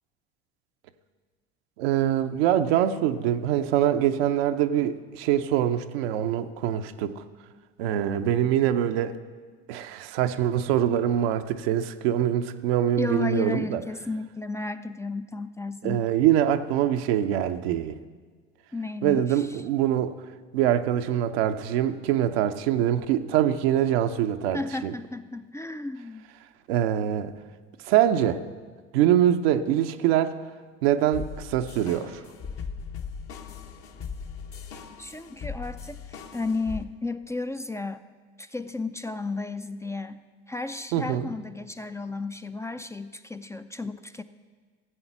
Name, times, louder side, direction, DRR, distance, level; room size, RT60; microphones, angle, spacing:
voice 1, 1.8-7.2 7.8-9.1 9.7-13.8 15.8-18.0 19.0-20.2 20.5-24.9 26.7-27.3 27.8-28.4 28.9-30.4 30.8-32.2 40.9-41.3, right 11 dB, 75° right, 8 dB, 0.7 m, -24 dB
voice 2, 13.0-16.1 18.7-19.4 24.5-26.2 35.0-38.0 38.4-40.2 40.5-44.2, left 3 dB, 10° left, 10 dB, 0.4 m, -33 dB
sound 1, 31.1-36.8, left 6 dB, 45° left, 1.1 m, -39 dB
14.5 x 7.8 x 6.0 m, 1.5 s
hypercardioid pair, 70°, 31 cm